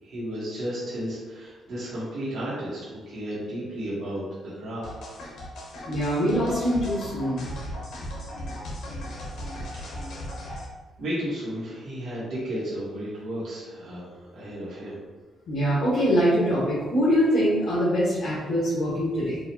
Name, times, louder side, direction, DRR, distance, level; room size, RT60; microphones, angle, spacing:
voice 1, 0.0-4.9 9.7-10.3 11.0-15.0, equal, 60° right, -9 dB, 1.3 m, -33 dB
sound 1, 4.8-10.6, equal, 85° left, 1.0 m, -36 dB
voice 2, 5.9-7.4 15.5-19.4, equal, 65° left, -10 dB, 1.3 m, -23 dB
4.8 x 2.4 x 2.8 m, 1.4 s
cardioid pair, 160°, 0 cm